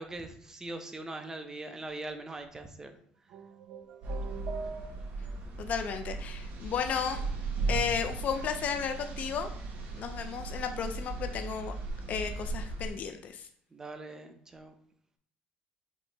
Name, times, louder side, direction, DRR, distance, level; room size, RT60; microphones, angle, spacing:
voice 1, 0.0-2.9 13.7-14.7, right 2 dB, 15° right, 6 dB, 0.6 m, -41 dB
sound 1, 3.3-5.4, right 6 dB, 75° right, 0.8 m, -42 dB
sound 2, 4.0-12.9, right 3 dB, 50° right, 1.1 m, -37 dB
voice 2, 5.6-7.2 7.7-9.5 10.0-11.7 12.1-13.5, left 7 dB, 50° left, 6 dB, 0.4 m, -33 dB
5.2 x 2.9 x 3.4 m, 0.64 s
cardioid pair, 120°, 3 cm